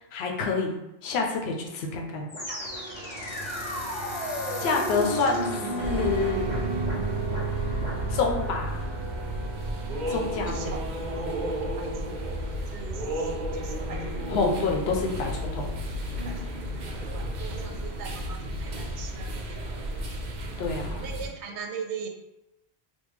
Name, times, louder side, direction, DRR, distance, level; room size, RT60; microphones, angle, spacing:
voice 1, 0.1-2.3 4.6-6.4 8.1-8.8 10.1-10.7 14.3-15.8 20.6-21.0, left 4 dB, 75° left, 1 dB, 0.8 m, -28 dB
sound 1, 2.3-11.4, right 2 dB, 30° left, 0.7 m, -33 dB
voice 2, 2.5-3.3 10.1-10.2 10.5-12.4 12.7-14.3 16.2-16.4 16.7-16.8 17.1-19.6 19.9-20.0 21.0-22.1, right 6 dB, 90° right, 3 dB, 0.9 m, -41 dB
sound 2, 5.8-21.3, equal, 55° right, 0.6 m, -33 dB
3.5 x 2.2 x 3.2 m, 0.91 s
omnidirectional pair, 1.1 m